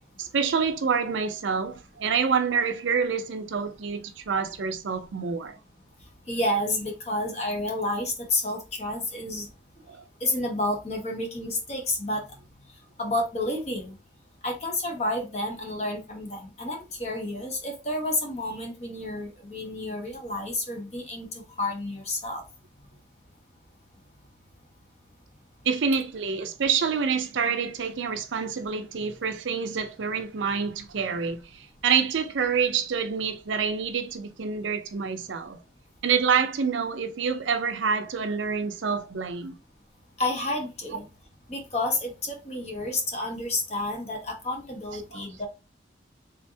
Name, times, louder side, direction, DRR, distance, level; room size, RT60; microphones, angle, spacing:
voice 1, 0.2-5.6 9.9-10.0 25.7-35.6 36.0-39.5 45.1-45.2, right 6 dB, 85° right, 0.5 m, -27 dB
voice 2, 6.3-9.5 10.2-12.2 13.0-14.0 14.4-22.4 40.2-41.1 41.5-45.5, left 1 dB, 35° left, 1.1 m, -30 dB
3.6 x 3.3 x 2.7 m
head